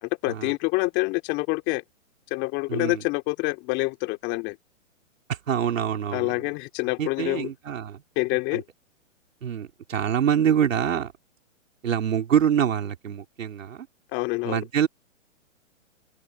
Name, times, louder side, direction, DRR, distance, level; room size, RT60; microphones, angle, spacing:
voice 1, 0.0-1.8 2.3-4.6 6.1-7.5 8.2-8.6 14.1-14.6, left 24 dB, 30° left, 2.8 m, -26 dB
voice 2, 2.7-3.0 5.3-6.5 7.0-8.0 8.5-8.6 9.4-11.1 11.8-13.9 14.4-14.9, right 8 dB, 75° right, 4.3 m, -25 dB
open air
hypercardioid pair, 145°, 40 cm